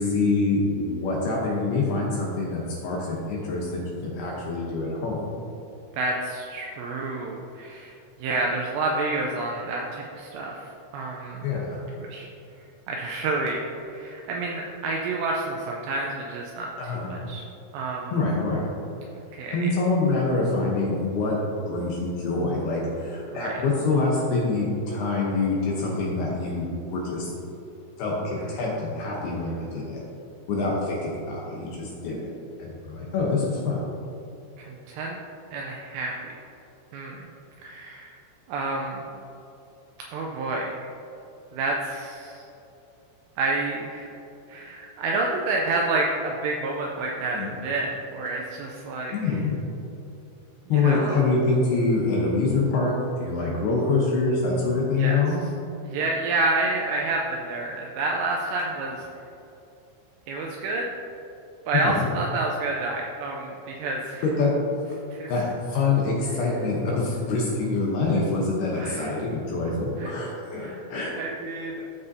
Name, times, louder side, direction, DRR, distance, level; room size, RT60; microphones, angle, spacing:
voice 1, 0.0-3.7 4.0-5.2 11.4-11.8 16.8-17.1 18.1-18.7 19.5-21.4 21.7-27.3 28.0-30.0 30.5-32.2 32.6-33.8 47.3-47.5 49.1-49.6 50.7-52.9 53.2-55.4 61.8-62.1 64.2-64.5 64.9-65.0 65.3-71.1, left 3 dB, 75° left, -3 dB, 2.5 m, -25 dB
voice 2, 5.9-11.5 12.0-12.3 12.9-13.6 13.9-16.7 17.1-17.4 17.7-18.1 19.3-19.7 23.3-23.6 34.6-35.2 35.5-36.3 36.9-37.2 37.6-38.2 38.5-39.1 40.1-40.8 41.5-42.4 43.4-44.2 44.5-49.3 50.7-51.2 55.0-55.2 55.8-59.1 60.3-60.9 61.7-64.2 65.1-65.3 68.7-69.2 70.0-70.1 70.6-70.8 71.2-71.8, right 2 dB, 90° right, 0 dB, 2.5 m, -29 dB
14.5 x 5.5 x 2.7 m, 2.9 s
omnidirectional pair, 5.5 m